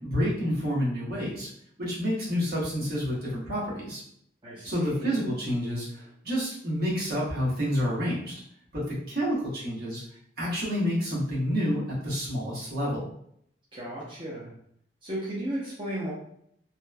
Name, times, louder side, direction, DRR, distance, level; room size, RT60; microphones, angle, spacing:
voice 1, 0.0-1.5 1.8-4.0 4.6-8.3 8.7-10.0 10.4-13.1, equal, 60° right, -6 dB, 1.0 m, -29 dB
voice 2, 4.4-5.2 13.7-14.5 15.0-16.1, right 1 dB, 30° right, -8 dB, 0.7 m, -35 dB
3.0 x 2.0 x 2.2 m, 0.69 s
head